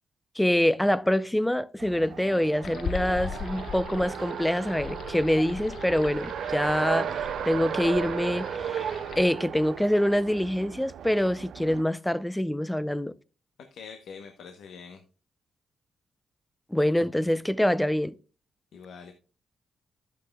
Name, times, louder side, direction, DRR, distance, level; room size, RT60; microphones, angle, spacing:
voice 1, 0.4-13.1 16.7-18.1, left 1 dB, 5° left, 0.5 m, -25 dB
Race car auto racing, 1.8-11.8, right 8 dB, 75° right, 0.5 m, -35 dB
sound 1, 2.6-9.2, left 7 dB, 65° left, 0.4 m, -39 dB
voice 2, 13.7-15.0 18.7-19.1, left 6 dB, 80° left, 0.9 m, -44 dB
11.5 x 8.3 x 2.3 m
cardioid pair, 70°, 0 cm